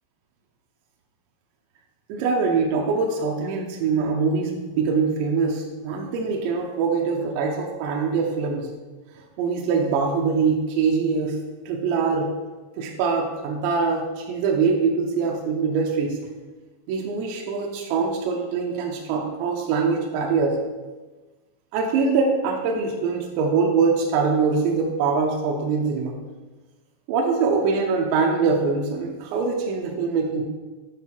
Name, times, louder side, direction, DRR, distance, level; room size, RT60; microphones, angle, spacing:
voice 1, 2.1-8.7 9.4-11.4 11.7-12.3 12.8-16.2 16.9-20.6 21.7-26.2 27.1-30.4, right 5 dB, 85° right, -1 dB, 2.8 m, -23 dB
9.1 x 3.8 x 6.0 m, 1.3 s
omnidirectional pair, 5.6 m